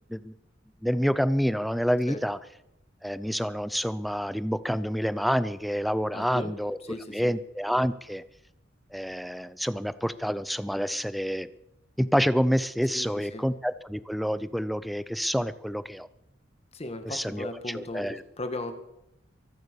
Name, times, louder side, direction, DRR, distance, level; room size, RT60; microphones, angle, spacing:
voice 1, 0.8-2.4 3.0-6.8 7.1-8.2 8.9-11.5 12.0-16.1 17.0-18.2, equal, ahead, 15 dB, 0.5 m, -28 dB
voice 2, 6.1-6.5 6.8-7.3 12.9-13.4 16.7-18.7, left 2 dB, 30° left, 7 dB, 1.7 m, -37 dB
24.0 x 8.2 x 6.9 m, 0.87 s
head